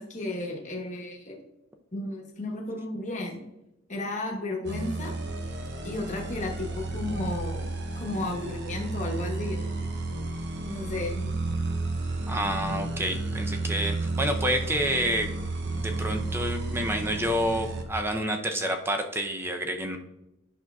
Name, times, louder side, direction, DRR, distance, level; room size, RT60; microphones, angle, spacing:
voice 1, 0.0-1.4 1.9-3.4 3.9-5.2 5.8-7.7 8.0-9.9 10.6-11.3, left 2 dB, 35° left, 0 dB, 1.1 m, -33 dB
sound 1, 4.6-17.8, right 2 dB, 55° right, 0.7 m, -32 dB
voice 2, 12.3-15.3 15.7-20.0, right 1 dB, 10° right, 5 dB, 0.5 m, -29 dB
9.9 x 6.0 x 2.3 m, 0.91 s
head